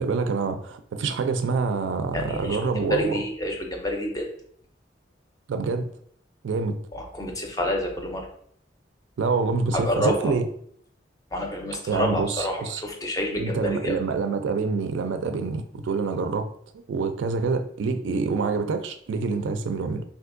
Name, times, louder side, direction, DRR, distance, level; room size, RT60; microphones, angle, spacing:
voice 1, 0.0-3.1 5.5-5.9 6.4-6.8 9.2-10.4 11.9-12.8 13.4-16.5 16.9-20.0, right 4 dB, 80° right, 8 dB, 0.3 m, -26 dB
voice 2, 2.1-2.6 2.9-4.3 6.9-8.3 9.7-10.3 11.3-14.0, equal, 20° left, 2 dB, 0.4 m, -28 dB
3.5 x 2.6 x 2.5 m, 0.64 s
head